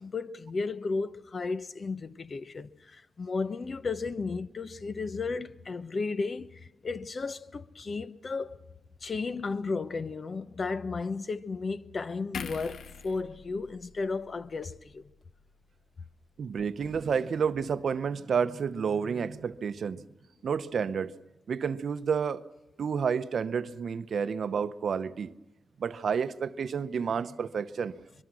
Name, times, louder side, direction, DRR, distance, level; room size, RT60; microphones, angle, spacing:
voice 1, 0.0-8.6 9.0-15.1, left 4 dB, 45° left, 0.8 m, -34 dB
sound 1, 12.3-15.7 16.1-16.2, left 6 dB, 75° left, 0.9 m, -45 dB
voice 2, 16.4-20.0 20.4-21.1 21.5-22.5 22.8-25.3 25.8-28.0, right 6 dB, 65° right, 0.8 m, -30 dB
24.5 x 22.5 x 6.2 m
wide cardioid pair, 105°, 0 cm